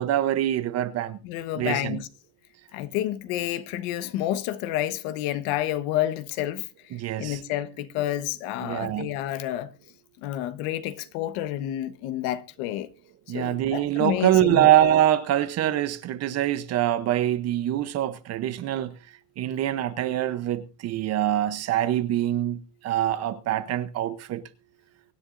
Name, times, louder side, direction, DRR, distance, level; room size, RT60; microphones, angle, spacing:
voice 1, 0.0-1.2 1.6-2.0 6.9-7.4 8.6-9.1 13.3-18.9 19.4-22.6 22.8-24.4, right 12 dB, 30° right, 0.8 m, -24 dB
voice 2, 1.2-2.1 2.7-6.6 7.2-9.7 10.2-12.9 13.3-14.7, left 13 dB, 55° left, 1.2 m, -29 dB
24.0 x 9.9 x 2.6 m
supercardioid pair, 145°, 49 cm